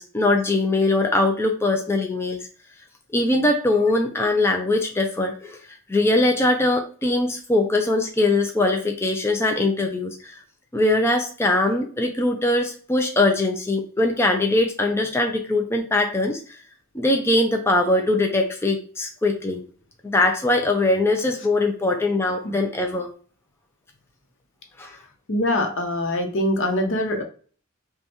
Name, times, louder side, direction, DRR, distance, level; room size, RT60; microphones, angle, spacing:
voice 1, 0.0-2.5 3.1-10.4 10.7-16.6 16.9-19.6 20.0-23.1 24.8-24.9, left 2 dB, 10° left, 3 dB, 0.4 m, -21 dB
voice 2, 25.3-27.2, left 1 dB, 60° left, 4 dB, 0.8 m, -23 dB
5.3 x 2.3 x 3.0 m, 0.41 s
head